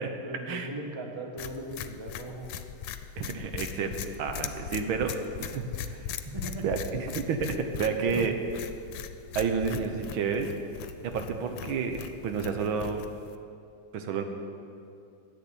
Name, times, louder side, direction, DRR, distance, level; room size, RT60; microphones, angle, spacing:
voice 1, 0.2-2.5 6.3-6.7 8.1-8.3, right 1 dB, 20° right, 3 dB, 0.8 m, -38 dB
sound 1, 1.4-13.4, left 9 dB, 80° left, 1.4 m, -40 dB
voice 2, 3.2-3.9 4.2-6.2 6.6-8.3 9.3-10.5 11.0-13.1 13.9-14.2, right 5 dB, 75° right, 6 dB, 1.7 m, -30 dB
11.0 x 8.1 x 8.8 m, 2.5 s
omnidirectional pair, 2.3 m